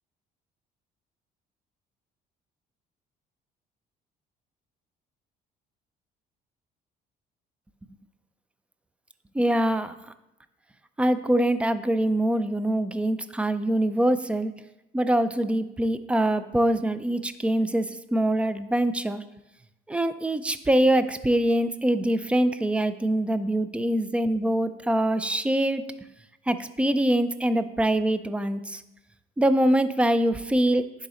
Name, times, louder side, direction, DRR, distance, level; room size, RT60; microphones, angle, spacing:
voice 1, 9.3-9.9 11.0-14.5 14.9-19.2 19.9-25.8 26.5-28.8 29.4-30.8, right 1 dB, 5° right, 12 dB, 0.4 m, -24 dB
10.5 x 3.8 x 4.2 m, 0.93 s
cardioid pair, 110°, 17 cm